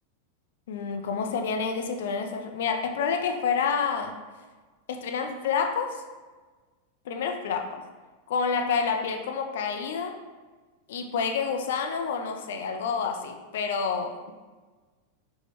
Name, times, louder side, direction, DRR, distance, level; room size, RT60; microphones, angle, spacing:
voice 1, 0.7-4.2 4.9-6.0 7.1-7.8 8.3-10.2 10.9-14.3, left 6 dB, 55° left, 4 dB, 0.3 m, -28 dB
5.0 x 2.1 x 3.0 m, 1.4 s
figure-of-eight pair, 90°, 0 cm